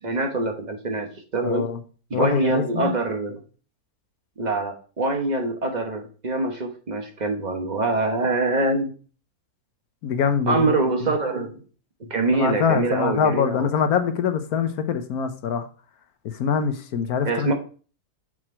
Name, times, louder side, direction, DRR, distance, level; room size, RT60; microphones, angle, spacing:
voice 1, 0.0-1.7 2.1-3.4 4.4-8.9 10.5-11.5 12.0-13.7 17.2-17.5, right 2 dB, 30° right, 1.1 m, -24 dB
voice 2, 1.4-1.8 2.1-2.9 10.0-10.7 11.0-11.1 12.3-15.6 16.2-17.5, left 7 dB, 70° left, 1.2 m, -24 dB
6.2 x 4.9 x 4.3 m
omnidirectional pair, 1.7 m